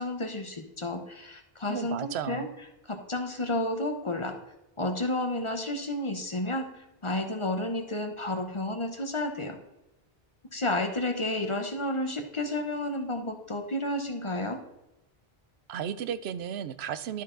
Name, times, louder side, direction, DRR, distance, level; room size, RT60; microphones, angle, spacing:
voice 1, 0.0-2.5 2.9-4.3 4.8-6.7 7.0-9.6 10.5-14.6, left 1 dB, 30° left, 5 dB, 0.9 m, -31 dB
voice 2, 1.7-2.5 15.7-17.2, right 9 dB, 80° right, 13 dB, 0.8 m, -34 dB
12.0 x 4.4 x 3.8 m, 0.95 s
omnidirectional pair, 1.1 m